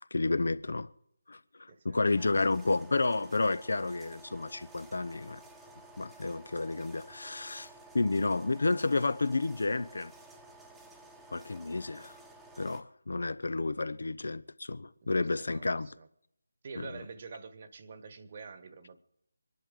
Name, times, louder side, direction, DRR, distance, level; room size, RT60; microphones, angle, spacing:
voice 1, 0.1-0.9 1.3-1.4 1.8-5.4 6.0-7.7 7.9-10.1 11.3-12.1 12.6-15.9 16.8-16.9, left 3 dB, 65° left, 0.8 m, -30 dB
voice 2, 1.7-2.4 14.9-16.1 16.6-19.0, right 4 dB, 35° right, 1.3 m, -47 dB
sound 1, 2.2-12.8, right 2 dB, 5° right, 1.1 m, -53 dB
24.5 x 10.5 x 5.3 m
figure-of-eight pair, 160°, 0 cm